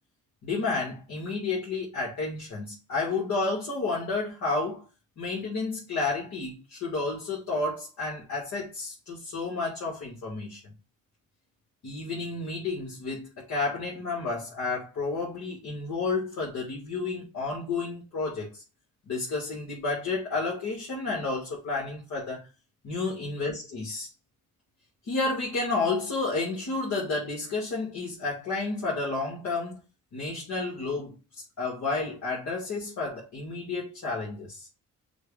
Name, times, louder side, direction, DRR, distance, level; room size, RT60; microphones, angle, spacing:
voice 1, 0.4-4.8 5.2-10.7 11.8-18.6 19.1-22.5 22.8-24.1 25.1-29.8 30.1-34.7, left 3 dB, 70° left, 1.9 m, -31 dB
6.3 x 2.5 x 3.3 m
cardioid pair, 90°, 30 cm